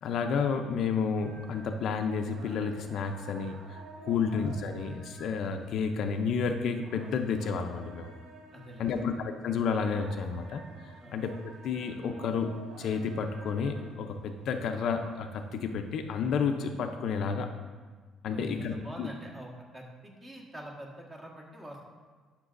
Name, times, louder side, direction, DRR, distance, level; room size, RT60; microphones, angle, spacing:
voice 1, 0.0-8.1 8.8-11.4 11.6-17.5 18.2-19.1, left 5 dB, 60° left, 6 dB, 0.5 m, -31 dB
sound 1, 1.2-16.2, right 2 dB, 80° right, 1.1 m, -52 dB
voice 2, 8.5-9.0 11.0-11.2 18.2-21.8, right 1 dB, 15° right, -1 dB, 1.3 m, -45 dB
12.0 x 6.0 x 2.5 m, 1.4 s
cardioid pair, 135°, 0 cm